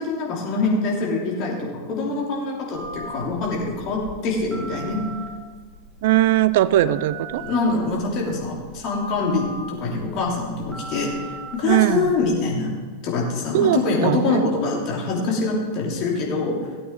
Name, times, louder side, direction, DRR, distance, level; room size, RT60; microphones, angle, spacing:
voice 1, 0.0-5.0 7.4-11.1 11.5-12.7 13.0-16.6, left 3 dB, 40° left, -2 dB, 3.0 m, -24 dB
Telephone, 2.7-12.3, right 2 dB, 15° right, 1.8 m, -39 dB
voice 2, 6.0-7.4 11.7-12.1 13.5-14.4, right 13 dB, 55° right, 17 dB, 0.3 m, -19 dB
16.5 x 8.5 x 3.8 m, 1.6 s
figure-of-eight pair, 90°, 0 cm